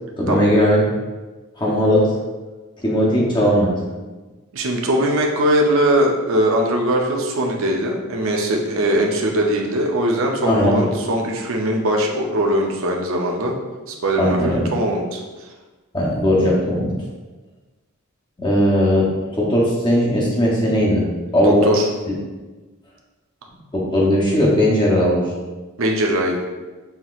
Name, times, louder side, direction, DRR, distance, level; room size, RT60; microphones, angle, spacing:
voice 1, 0.2-0.9 1.6-2.1 2.8-3.7 10.4-10.9 14.2-14.7 15.9-16.9 18.4-21.0 21.3-21.7 22.1-22.2 23.7-25.3, equal, 20° left, -4 dB, 0.8 m, -18 dB
voice 2, 4.5-13.5 13.9-15.2 21.4-21.9 25.8-26.4, right 1 dB, 65° right, 1 dB, 0.6 m, -20 dB
5.7 x 2.8 x 2.4 m, 1.2 s
head